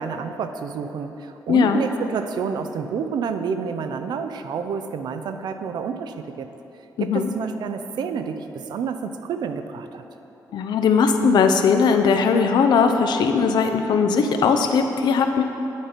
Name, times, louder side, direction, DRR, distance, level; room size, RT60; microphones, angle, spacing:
voice 1, 0.0-6.5 7.0-10.0, right 6 dB, 75° right, 8 dB, 0.4 m, -29 dB
voice 2, 1.5-1.8 7.0-7.3 10.5-15.4, left 5 dB, 80° left, 6 dB, 0.5 m, -19 dB
9.1 x 5.0 x 4.4 m, 3.0 s
wide cardioid pair, 170°, 7 cm